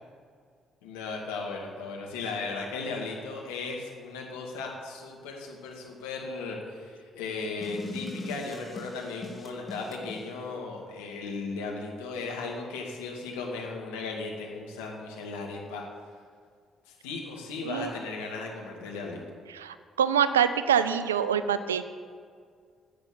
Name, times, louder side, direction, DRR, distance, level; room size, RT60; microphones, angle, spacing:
voice 1, 0.8-15.8 16.9-19.2, left 4 dB, 80° left, 0 dB, 2.0 m, -36 dB
sound 1, 7.6-10.2, left 1 dB, 30° left, 2.5 m, -40 dB
voice 2, 19.5-21.8, right 8 dB, 90° right, 12 dB, 0.5 m, -25 dB
10.5 x 8.1 x 8.7 m, 2.1 s
hypercardioid pair, 45°, 0 cm